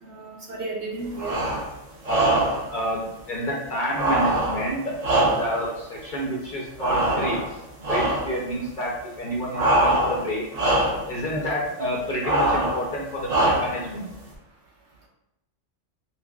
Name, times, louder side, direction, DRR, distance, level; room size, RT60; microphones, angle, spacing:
voice 1, 0.0-1.7 11.3-11.4, right 2 dB, 60° right, -2 dB, 1.0 m, -34 dB
sound 1, 1.2-1.7 2.0-2.7 3.9-5.7 6.8-7.5 7.8-8.4 9.5-10.3 10.5-11.1 12.2-12.8 13.3-13.9, right 1 dB, 35° right, 0.7 m, -23 dB
voice 2, 2.1-10.4 11.1-14.1, equal, 50° left, -3 dB, 0.6 m, -29 dB
5.4 x 2.0 x 2.3 m, 0.90 s
omnidirectional pair, 1.4 m